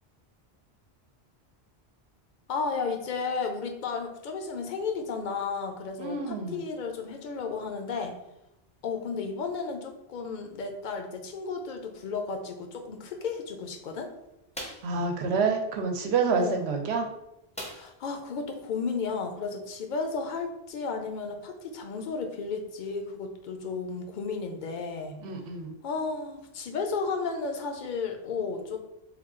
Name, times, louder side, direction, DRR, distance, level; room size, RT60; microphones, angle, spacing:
voice 1, 2.5-8.2 8.8-14.1 16.3-16.7 17.7-25.2 25.8-28.8, left 4 dB, 55° left, 5 dB, 0.6 m, -33 dB
voice 2, 6.0-6.6 14.8-17.1 25.2-25.7, right 4 dB, 85° right, 4 dB, 0.9 m, -28 dB
sound 1, 14.5-14.9 17.5-18.1 18.5-18.6 19.0-19.2, equal, 10° left, 0.5 m, -40 dB
3.6 x 2.3 x 3.6 m, 0.90 s
omnidirectional pair, 1.1 m